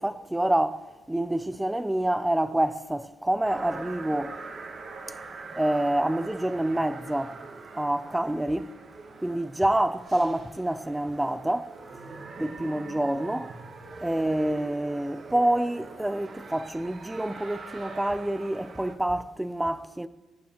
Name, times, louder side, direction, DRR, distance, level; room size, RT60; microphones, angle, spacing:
voice 1, 0.0-4.4 5.6-7.4 7.7-8.7 9.2-11.8 12.4-13.5 14.0-20.1, right 1 dB, 5° right, 0.4 m, -27 dB
sound 1, 3.4-18.9, right 3 dB, 40° right, 1.2 m, -43 dB
23.0 x 11.0 x 3.0 m
cardioid pair, 150°, 0 cm